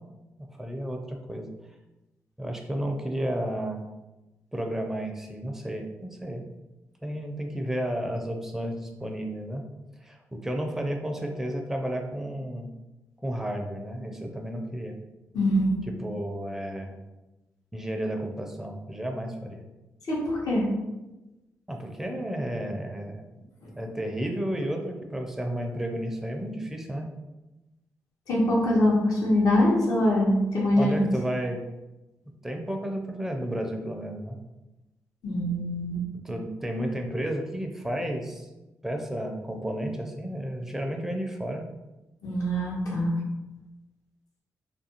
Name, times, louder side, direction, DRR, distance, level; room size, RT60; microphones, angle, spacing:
voice 1, 0.4-1.5 2.4-3.9 4.5-6.4 7.0-9.6 10.0-12.7 13.2-15.0 15.9-16.9 17.7-19.6 21.7-23.2 23.7-27.1 30.8-31.6 32.4-34.4 36.1-38.5 38.8-41.7, right 1 dB, 5° right, 3 dB, 0.4 m, -32 dB
voice 2, 15.3-15.7 20.1-20.6 28.3-31.1 35.2-36.0 42.2-43.1, left 1 dB, 70° left, -4 dB, 0.9 m, -23 dB
2.5 x 2.2 x 2.8 m, 1.0 s
cardioid pair, 60°, 6 cm